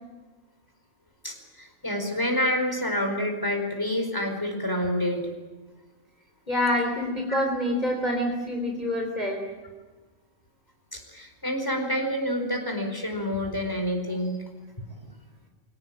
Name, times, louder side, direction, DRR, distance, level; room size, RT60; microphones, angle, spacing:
voice 1, 1.2-5.2 7.3-7.4 10.9-14.4, equal, 15° left, 4 dB, 4.9 m, -28 dB
voice 2, 6.5-9.4, left 1 dB, 30° left, 1 dB, 3.9 m, -26 dB
25.0 x 18.5 x 8.9 m, 1.3 s
omnidirectional pair, 1.4 m